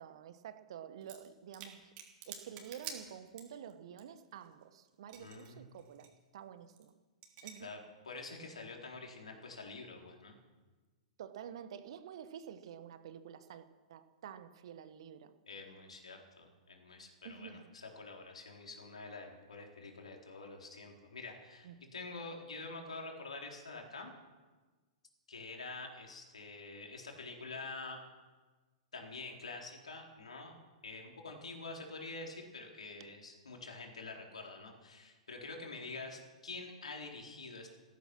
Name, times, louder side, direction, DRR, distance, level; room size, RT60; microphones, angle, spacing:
voice 1, 0.0-1.9 2.3-6.9 7.4-7.7 11.2-15.3 17.2-17.7 21.6-21.7 33.0-33.1, right 9 dB, 55° right, 12 dB, 1.2 m, -49 dB
sound 1, 1.0-1.3 1.5-3.7 4.0-4.1 4.2-5.5 5.7-6.1 6.7-6.9 7.2-7.5, right 9 dB, 35° right, 3.3 m, -48 dB
voice 2, 5.2-5.7 7.6-7.8 8.1-10.4 15.5-24.1 25.3-28.0 28.9-30.6 30.8-37.7, left 3 dB, 70° left, 1 dB, 3.9 m, -47 dB
16.0 x 14.5 x 6.1 m, 1.3 s
figure-of-eight pair, 105°, 4 cm